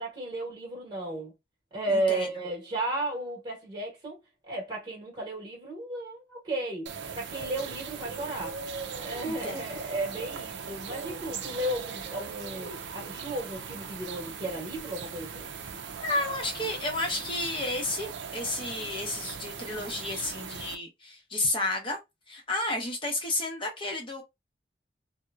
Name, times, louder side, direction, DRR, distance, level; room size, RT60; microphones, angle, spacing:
voice 1, 0.0-1.3 1.7-4.2 4.4-8.6 9.0-15.5, right 1 dB, 25° right, 1.0 m, -34 dB
voice 2, 1.9-2.3 9.3-9.8 16.0-22.0 22.3-24.2, left 2 dB, 30° left, 0.8 m, -32 dB
sound 1, 6.9-20.8, right 6 dB, 80° right, 0.4 m, -39 dB
2.8 x 2.1 x 2.3 m
head